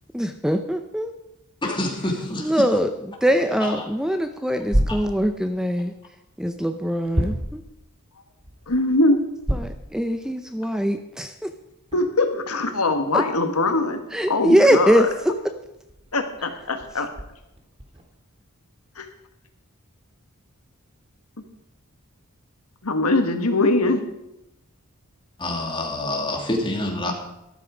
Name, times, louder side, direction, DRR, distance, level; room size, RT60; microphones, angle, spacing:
voice 1, 0.1-1.1 2.4-5.9 6.4-7.6 9.5-11.5 13.1-13.2 14.1-15.5, equal, 5° right, 8 dB, 0.6 m, -22 dB
voice 2, 1.6-2.6 4.9-5.0 25.4-27.1, left 1 dB, 20° left, 1 dB, 2.6 m, -26 dB
sound 1, 4.6-5.7 6.3-7.8 8.3-10.0 10.4-10.5 11.1-11.2 11.8-18.0, equal, 25° right, 1.9 m, -30 dB
voice 3, 8.7-9.2 11.9-14.0 14.3-15.0 16.1-17.1 19.0-19.1 22.8-24.0, left 2 dB, 85° left, 6 dB, 1.6 m, -22 dB
13.0 x 13.0 x 5.0 m, 0.89 s
head